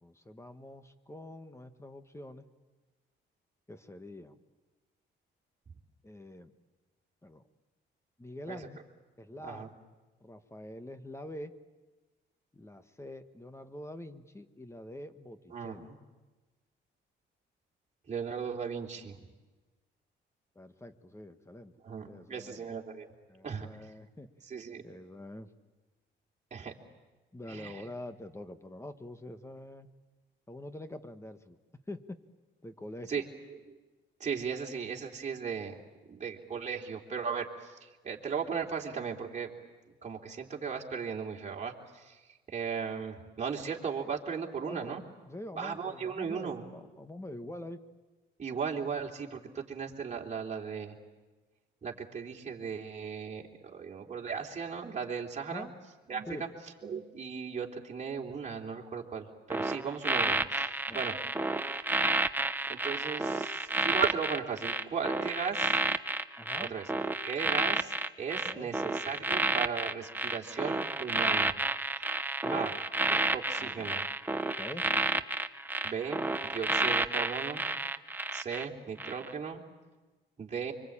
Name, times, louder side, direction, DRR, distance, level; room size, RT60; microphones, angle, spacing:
voice 1, 0.0-2.4 3.7-4.3 6.0-6.5 7.2-7.4 8.2-8.8 9.2-9.7 10.2-11.5 12.5-15.9 20.5-21.7 22.1-22.6 23.3-24.3 24.8-25.5 27.3-29.9 30.5-31.6 31.9-32.2 32.6-33.2 44.7-45.0 45.3-47.8 55.5-55.7 56.3-56.5 60.9-61.0 66.4-66.7 68.4-68.7 72.4-72.8 73.1-73.3 73.6-74.0 74.6-74.9, left 1 dB, 15° left, 9 dB, 1.5 m, -45 dB
voice 2, 15.5-16.0 18.1-19.2 21.8-23.1 23.4-23.7 24.5-24.8 26.5-26.7 27.5-27.8 33.1-33.2 33.5-33.8 34.2-35.8 36.1-39.5 40.0-42.2 42.5-45.0 45.6-46.7 48.4-50.9 51.8-55.7 56.1-56.5 56.8-61.2 62.6-65.8 66.6-66.9 67.2-71.5 72.5-72.7 73.1-74.1 75.8-77.6 78.3-79.6 80.4-80.7, right 6 dB, 35° right, -1 dB, 3.4 m, -37 dB
sound 1, 59.5-78.6 79.0-79.3, right 2 dB, 10° right, 0.9 m, -31 dB
25.0 x 24.0 x 8.8 m, 1.2 s
cardioid pair, 90°, 20 cm